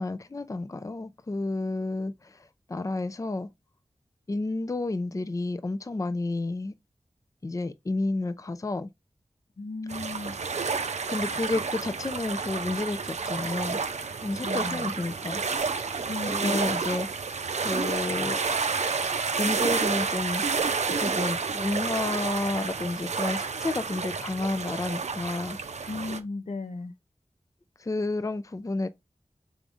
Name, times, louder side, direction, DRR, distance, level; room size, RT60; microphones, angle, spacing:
voice 1, 0.0-3.5 4.3-6.7 7.4-8.9 11.1-13.8 14.2-15.4 16.3-17.1 17.6-18.4 19.4-20.4 21.0-25.6 27.8-28.9, left 2 dB, 30° left, 0.4 m, -30 dB
voice 2, 9.6-10.4 14.4-14.9 16.0-16.7 25.9-26.9, left 3 dB, 75° left, 0.6 m, -35 dB
sound 1, 9.9-26.2, right 5 dB, 70° right, 0.5 m, -30 dB
5.0 x 3.5 x 2.5 m
cardioid pair, 40°, 12 cm